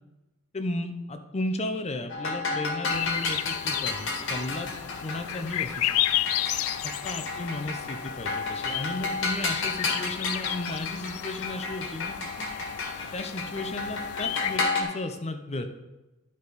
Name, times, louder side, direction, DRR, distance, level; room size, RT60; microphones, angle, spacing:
voice 1, 0.5-4.7 5.0-5.9 6.8-12.5 13.1-15.7, left 1 dB, 30° left, 8 dB, 0.7 m, -34 dB
sound 1, 2.1-14.8, left 3 dB, 65° left, 1.8 m, -32 dB
sound 2, 2.9-14.6, left 13 dB, 85° left, 0.4 m, -33 dB
11.5 x 5.0 x 4.1 m, 1.0 s
head